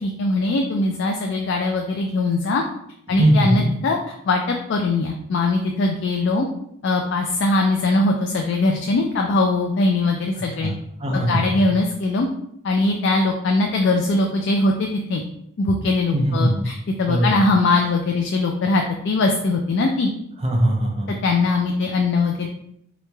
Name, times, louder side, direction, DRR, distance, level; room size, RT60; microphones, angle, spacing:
voice 1, 0.0-2.6 3.1-4.0 4.3-6.5 6.8-10.7 11.1-12.3 12.6-15.2 15.6-20.1 21.1-22.5, left 2 dB, 55° left, 2 dB, 0.3 m, -21 dB
voice 2, 3.2-3.7 10.6-11.7 16.1-16.7 17.1-17.4 20.4-21.2, right 1 dB, 30° right, -1 dB, 0.5 m, -20 dB
3.7 x 3.0 x 2.2 m, 0.74 s
head